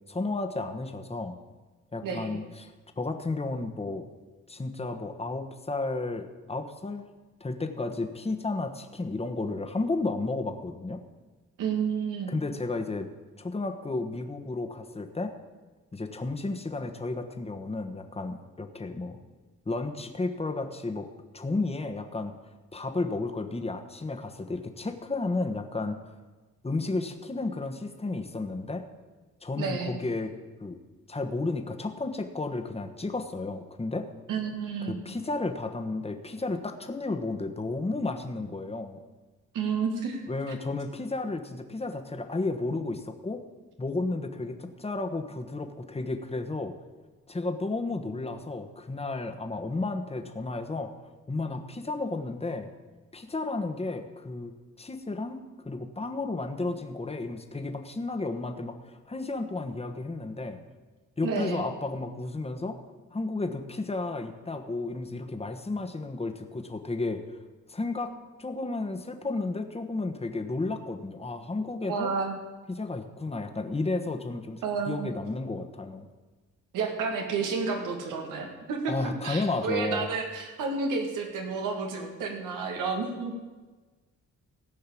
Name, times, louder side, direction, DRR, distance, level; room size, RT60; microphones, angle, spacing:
voice 1, 0.1-1.4 1.9-4.1 4.5-7.1 7.4-11.0 12.3-13.1 13.4-15.3 15.9-19.2 19.6-21.1 21.3-22.3 22.7-26.1 26.6-28.9 29.4-30.3 30.6-30.8 31.1-34.1 34.8-39.0 40.3-43.4 43.8-46.7 47.3-50.9 51.3-52.7 53.1-60.6 61.2-62.8 63.1-67.2 67.7-68.1 68.4-72.1 72.7-76.1 78.9-80.1, left 3 dB, 20° left, 6 dB, 1.3 m, -32 dB
voice 2, 11.6-12.3 29.6-29.9 34.3-34.9 39.5-40.2 61.2-61.6 71.9-72.4 74.6-75.1 76.7-83.3, right 5 dB, 85° right, 3 dB, 2.2 m, -30 dB
16.0 x 5.5 x 8.5 m, 1.3 s
cardioid pair, 70°, 31 cm